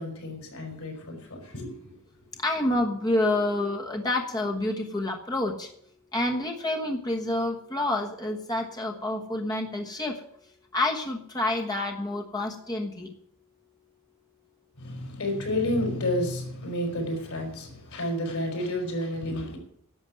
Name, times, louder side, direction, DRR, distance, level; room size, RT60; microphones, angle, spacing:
voice 1, 0.0-1.9 14.8-19.6, left 1 dB, 90° left, 4.5 m, -30 dB
voice 2, 2.4-5.7 6.1-10.2 10.7-13.1, left 2 dB, 20° left, 1.2 m, -28 dB
11.0 x 7.1 x 9.2 m
head